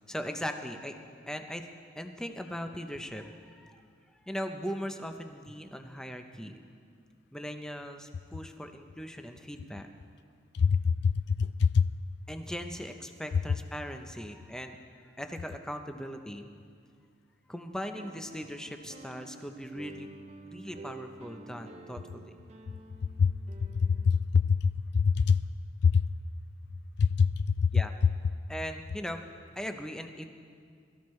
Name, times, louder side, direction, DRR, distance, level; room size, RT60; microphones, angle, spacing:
voice 1, 0.1-1.7 2.0-3.8 4.1-6.6 7.3-9.9 12.3-14.8 15.2-16.5 17.5-20.1 20.5-22.4 27.7-27.9 28.5-29.3 29.6-30.3, equal, 5° left, 5 dB, 0.7 m, -39 dB
voice 2, 10.5-11.9 23.2-23.3 23.6-25.4 25.8-26.1 27.0-27.8, left 5 dB, 60° left, 12 dB, 0.3 m, -25 dB
sound 1, 17.9-24.1, right 2 dB, 35° right, 0.6 m, -49 dB
22.0 x 13.5 x 3.2 m, 2.2 s
head